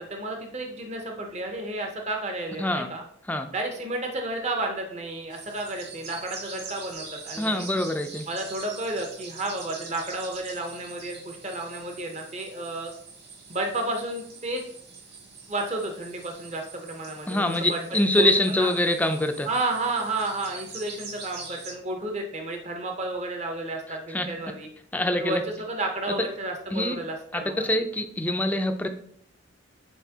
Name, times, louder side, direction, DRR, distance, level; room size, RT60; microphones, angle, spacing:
voice 1, 0.0-3.0 3.5-7.6 8.3-12.9 13.5-14.6 15.5-17.8 18.2-18.7 19.5-24.7 25.2-27.7, right 2 dB, 35° right, 3 dB, 0.8 m, -32 dB
sound 1, 5.3-21.7, right 4 dB, 55° right, 1.8 m, -44 dB
voice 2, 7.4-8.2 17.3-19.5 23.9-24.3 24.9-25.4 26.7-27.0 27.3-28.9, left 1 dB, 10° left, 6 dB, 0.4 m, -25 dB
8.1 x 4.2 x 2.8 m, 0.66 s
head